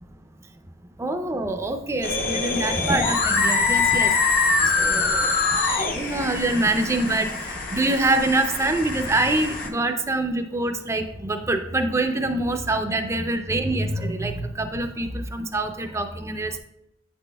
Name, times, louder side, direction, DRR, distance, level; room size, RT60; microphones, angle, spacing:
voice 1, 1.0-16.6, right 2 dB, 15° right, 6 dB, 0.4 m, -25 dB
sound 1, 2.0-9.7, left 4 dB, 50° left, 0.7 m, -24 dB
8.9 x 6.1 x 2.2 m, 0.80 s
head